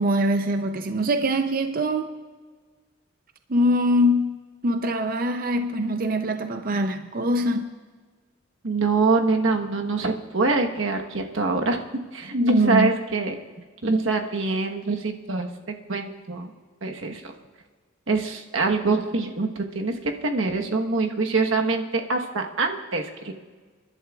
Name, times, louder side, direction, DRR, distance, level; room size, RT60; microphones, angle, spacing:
voice 1, 0.0-2.2 3.5-7.7 12.3-12.9 16.4-16.5, equal, 45° right, 7 dB, 0.5 m, -23 dB
voice 2, 8.6-11.8 12.1-13.3 13.8-16.5 16.8-17.3 18.1-19.9 20.2-23.3, right 3 dB, 90° right, 3 dB, 1.2 m, -24 dB
29.5 x 11.5 x 2.4 m, 1.5 s
head